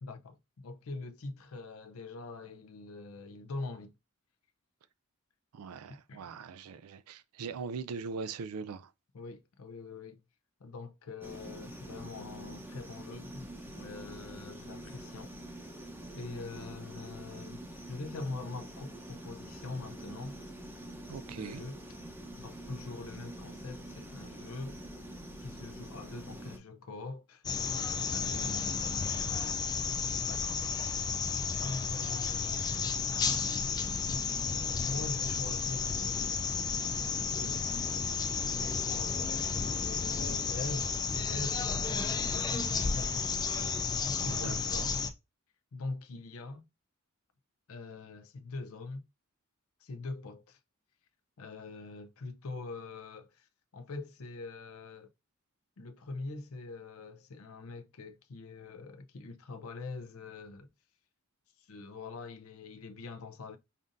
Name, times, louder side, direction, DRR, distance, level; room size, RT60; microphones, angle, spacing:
voice 1, 0.0-3.9 5.9-6.3 9.1-10.2 10.6-15.3 16.1-17.6 17.9-20.4 21.3-21.8 22.4-24.8 25.4-27.9 28.1-29.6 30.3-31.1 31.6-34.1 34.7-36.7 37.1-37.6 38.3-43.5 44.0-45.0 45.7-46.6 47.7-49.0 49.8-50.6 51.4-55.1 55.8-60.7 61.6-63.6, left 3 dB, 75° left, 0.6 m, -43 dB
voice 2, 5.5-8.9 21.1-21.6 44.2-44.9, right 5 dB, 85° right, 0.4 m, -41 dB
sound 1, 11.2-26.6, right 1 dB, 10° right, 0.7 m, -46 dB
sound 2, 27.4-45.1, left 5 dB, 20° left, 0.3 m, -32 dB
5.3 x 2.6 x 2.5 m
head